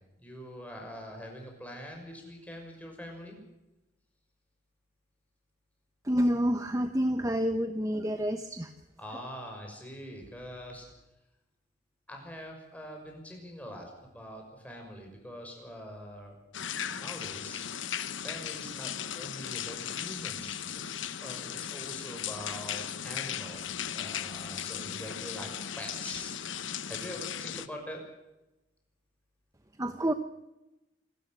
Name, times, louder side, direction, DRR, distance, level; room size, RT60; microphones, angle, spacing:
voice 1, 0.2-3.4 9.0-10.9 12.1-16.4 16.9-17.7 18.2-20.9 21.2-23.7 23.9-25.5 25.8-28.0, equal, 10° left, 2 dB, 6.3 m, -44 dB
voice 2, 6.0-8.7 29.8-30.1, equal, 15° right, 8 dB, 1.0 m, -28 dB
sound 1, 16.5-27.7, left 9 dB, 85° left, 1.0 m, -37 dB
27.5 x 13.5 x 7.9 m, 0.96 s
head